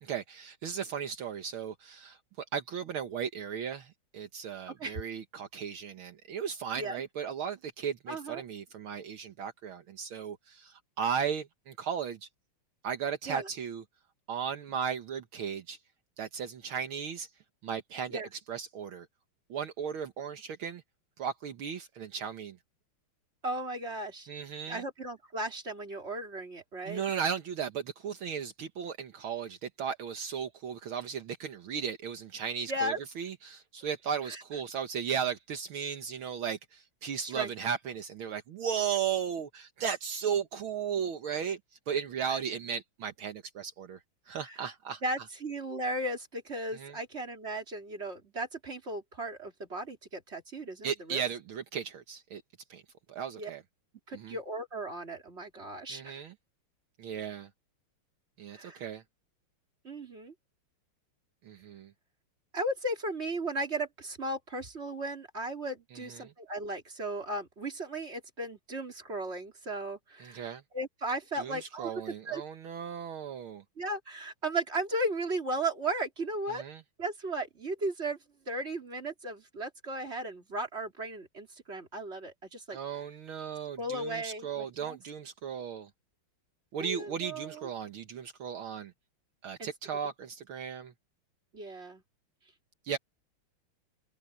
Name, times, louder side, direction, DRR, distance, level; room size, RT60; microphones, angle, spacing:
voice 1, 0.0-12.3 12.8-13.8 14.3-15.8 16.2-17.3 17.6-18.2 18.5-19.1 19.5-20.8 21.2-22.6 24.3-24.8 26.9-41.6 41.9-44.0 44.3-45.0 46.7-46.9 50.8-52.4 52.7-52.8 53.1-53.6 54.1-54.4 55.9-56.3 57.0-57.5 58.4-59.0 61.4-61.9 66.1-66.3 70.2-70.6 71.4-73.6 76.5-76.8 82.7-85.9 86.7-88.9 89.4-90.9 92.8-93.0, right 7 dB, 70° right, 2.1 m, -36 dB
voice 2, 8.1-8.4 13.3-13.5 18.1-18.3 23.4-24.3 24.7-27.0 32.7-33.0 34.3-34.4 37.2-37.5 42.3-42.4 44.3-44.7 45.0-51.2 53.4-53.5 54.1-56.2 58.5-58.8 59.8-60.3 62.5-72.4 73.8-76.6 77.0-78.2 78.5-83.0 83.8-85.0 86.8-87.7 89.6-89.7 91.5-92.0, right 1 dB, 30° right, 3.6 m, -36 dB
open air
omnidirectional pair, 2.4 m